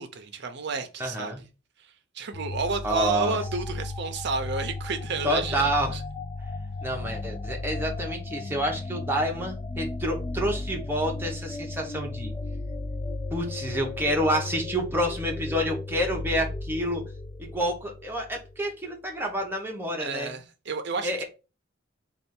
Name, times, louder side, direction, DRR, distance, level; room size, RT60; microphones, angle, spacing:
voice 1, 0.0-1.3 2.1-6.0 20.0-21.2, right 4 dB, 60° right, 0.6 m, -31 dB
voice 2, 1.0-1.4 2.8-3.4 5.2-6.0 6.8-12.3 13.3-17.1 17.4-20.4 21.0-21.2, equal, 10° right, 0.8 m, -28 dB
sound 1, 2.3-18.7, left 2 dB, 20° left, 0.3 m, -35 dB
3.3 x 2.4 x 4.2 m
head